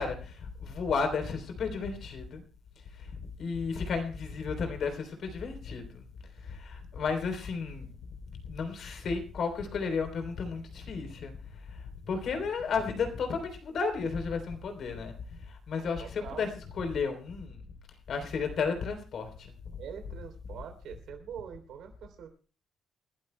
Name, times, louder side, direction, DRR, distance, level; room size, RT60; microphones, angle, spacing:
voice 1, 0.0-2.4 2.9-6.1 6.4-7.9 8.3-11.3 11.7-15.1 15.4-16.5 16.8-17.6 18.1-19.5, left 5 dB, 65° left, 5 dB, 3.4 m, -33 dB
voice 2, 15.7-16.5 19.8-22.3, right 8 dB, 75° right, 6 dB, 3.3 m, -44 dB
28.0 x 12.5 x 2.2 m, 0.37 s
cardioid pair, 90°, 0 cm